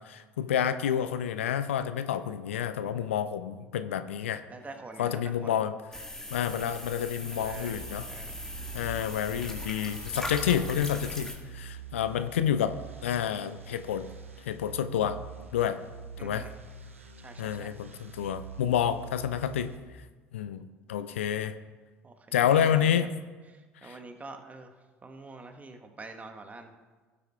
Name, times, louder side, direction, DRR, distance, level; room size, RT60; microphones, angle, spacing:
voice 1, 0.1-4.4 5.0-5.7 6.3-8.1 8.7-12.8 13.0-14.1 14.4-15.2 15.5-15.8 16.2-16.4 17.4-19.7 20.3-21.5 22.3-23.1 23.8-24.0, left 9 dB, 70° left, 11 dB, 0.5 m, -29 dB
voice 2, 4.5-5.5 7.3-8.5 16.2-16.5 17.2-17.7 22.0-23.1 23.5-24.7 25.0-26.7, right 3 dB, 20° right, 5 dB, 1.1 m, -46 dB
sound 1, 5.9-11.4, left 1 dB, 10° left, 1.7 m, -39 dB
sound 2, 7.3-19.8, right 5 dB, 80° right, 0.7 m, -46 dB
17.0 x 8.4 x 2.3 m, 1.4 s
figure-of-eight pair, 60°, 7 cm